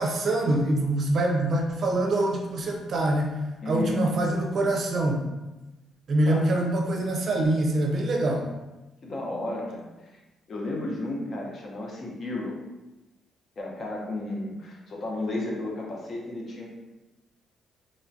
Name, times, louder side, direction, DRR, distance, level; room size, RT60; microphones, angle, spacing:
voice 1, 0.0-3.4 3.7-5.3 6.1-8.5, right 1 dB, 55° right, 1 dB, 0.5 m, -25 dB
voice 2, 3.6-4.1 6.2-6.5 9.0-9.9 10.5-12.6 13.6-16.7, left 2 dB, 45° left, -1 dB, 0.7 m, -33 dB
3.0 x 2.2 x 2.6 m, 1.0 s
cardioid pair, 90°, 0 cm